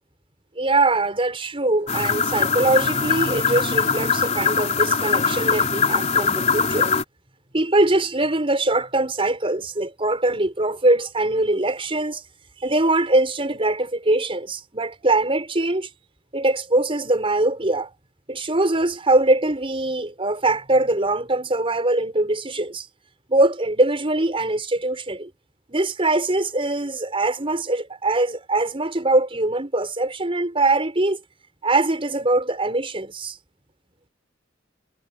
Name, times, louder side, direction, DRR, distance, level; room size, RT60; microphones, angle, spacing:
voice 1, 0.6-6.9 7.5-12.2 12.6-15.9 16.3-17.9 18.3-22.9 23.3-25.3 25.7-31.2 31.6-33.4, right 2 dB, 30° right, 5.3 m, -22 dB
sound 1, 1.9-7.0, left 5 dB, 35° left, 3.1 m, -22 dB
head